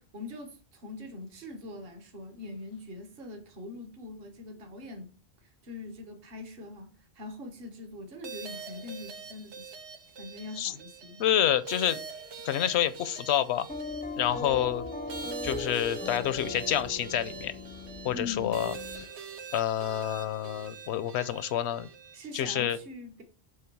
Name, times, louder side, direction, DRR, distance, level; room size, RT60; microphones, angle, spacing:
voice 1, 0.0-5.1 5.6-9.7 10.2-11.2 18.1-18.6 22.1-23.2, left 2 dB, 60° right, 1.3 m, -42 dB
sound 1, 8.2-22.7, right 5 dB, 90° right, 1.1 m, -44 dB
voice 2, 11.2-12.0 12.4-13.7 14.2-14.9 15.4-17.5 18.0-18.7 19.5-21.9 22.3-22.8, left 11 dB, 80° left, 0.9 m, -28 dB
sound 2, 13.7-19.0, left 3 dB, 15° left, 0.3 m, -38 dB
7.6 x 3.3 x 4.5 m
omnidirectional pair, 1.1 m